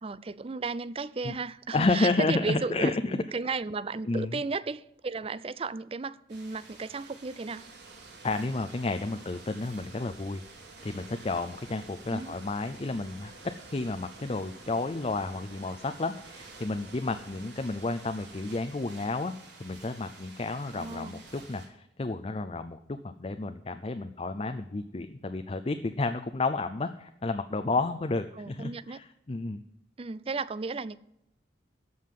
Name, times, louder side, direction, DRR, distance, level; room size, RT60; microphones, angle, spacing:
voice 1, 0.0-7.6 12.1-12.3 20.7-21.2 28.4-29.0 30.0-31.0, right 4 dB, 30° right, 0.4 m, -34 dB
voice 2, 1.7-3.2 4.1-4.4 8.2-10.4 10.8-13.3 13.7-19.3 19.6-29.6, left 3 dB, 30° left, 0.5 m, -31 dB
sound 1, 6.3-21.7, right 3 dB, 85° right, 4.0 m, -51 dB
sound 2, 7.5-18.6, right 3 dB, 65° right, 1.7 m, -53 dB
14.0 x 5.6 x 7.6 m
head